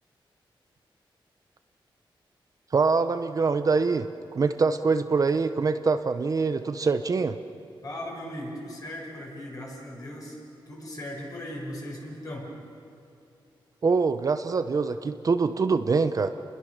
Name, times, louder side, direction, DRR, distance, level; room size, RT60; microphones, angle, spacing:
voice 1, 2.7-7.4 13.8-16.3, right 4 dB, 40° right, 9 dB, 0.8 m, -24 dB
voice 2, 7.8-10.4 10.7-12.5, left 1 dB, 40° left, -2 dB, 6.8 m, -38 dB
29.0 x 21.0 x 6.6 m, 2.8 s
wide cardioid pair, 130°, 9 cm